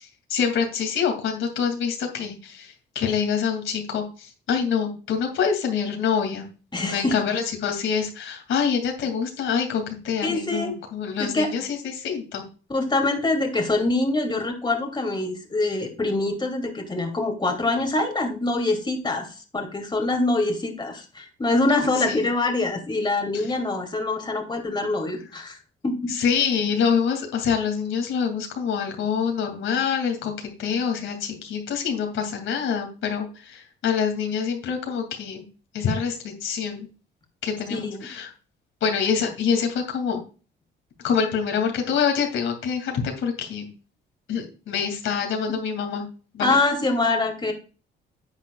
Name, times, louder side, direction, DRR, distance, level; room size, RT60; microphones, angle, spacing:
voice 1, 0.0-6.5 6.8-12.4 22.0-22.3 26.1-35.5 35.7-36.9 37.4-38.3 38.8-40.2 41.0-43.7 44.3-46.0 46.3-46.6, left 6 dB, 80° left, 3 dB, 2.5 m, -26 dB
voice 2, 6.7-7.1 10.2-10.7 11.2-11.5 12.7-19.3 19.5-25.6 25.8-26.0 37.7-38.1 46.4-47.5, left 2 dB, 20° left, 3 dB, 2.7 m, -24 dB
10.5 x 8.2 x 2.4 m, 0.35 s
cardioid pair, 90°, 20 cm